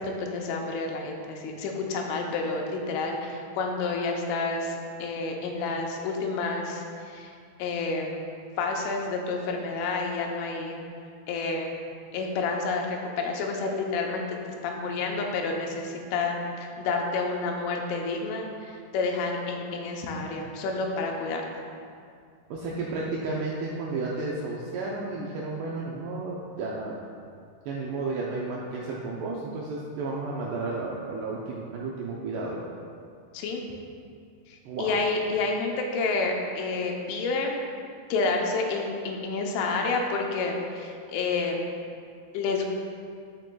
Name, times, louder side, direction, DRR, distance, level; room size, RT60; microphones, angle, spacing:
voice 1, 0.0-7.3 7.6-8.2 8.6-10.8 11.3-11.7 12.1-14.4 14.6-21.4 33.3-33.6 34.5-37.6 38.1-41.6 42.3-42.6, left 3 dB, 85° left, 1 dB, 3.3 m, -29 dB
voice 2, 22.5-27.0 27.7-32.6 34.7-34.9, right 3 dB, 85° right, -4 dB, 2.4 m, -32 dB
12.5 x 6.0 x 2.3 m, 2.3 s
omnidirectional pair, 5.5 m